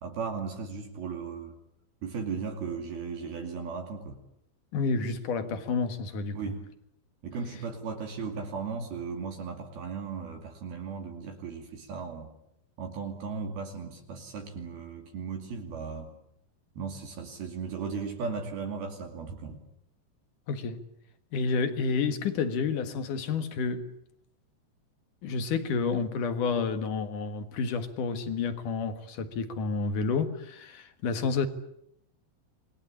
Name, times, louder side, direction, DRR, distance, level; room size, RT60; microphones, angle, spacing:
voice 1, 0.0-1.5 2.0-4.2 6.3-6.7 7.2-12.3 12.8-16.1 16.8-19.6, right 5 dB, 60° right, 4.3 m, -36 dB
voice 2, 4.7-6.4 20.5-20.8 21.3-23.9 25.2-31.5, left 5 dB, 60° left, 2.6 m, -30 dB
27.5 x 21.0 x 8.6 m
omnidirectional pair, 5.1 m